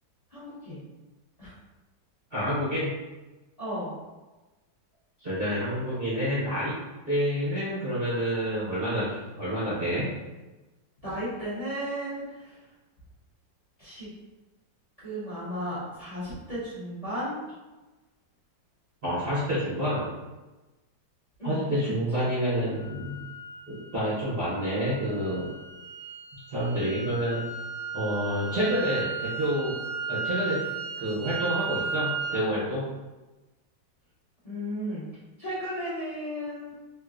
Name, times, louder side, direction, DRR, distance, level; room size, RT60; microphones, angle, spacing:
voice 1, 0.3-0.8 1.4-1.5 3.6-3.9 11.0-12.6 13.8-14.1 15.0-17.4 21.4-21.6 22.1-22.2 34.4-35.0 35.4-36.7, equal, 25° left, -10 dB, 0.9 m, -34 dB
voice 2, 2.3-2.9 5.2-6.7 7.1-10.1 19.0-20.1 21.4-23.2 23.7-25.5 26.3-27.4 27.9-29.8 30.1-30.6 31.0-32.9, equal, 40° right, -11 dB, 0.9 m, -28 dB
sound 1, 22.8-32.4, right 4 dB, 70° right, 1.0 m, -35 dB
3.7 x 2.6 x 2.5 m, 1.1 s
omnidirectional pair, 2.0 m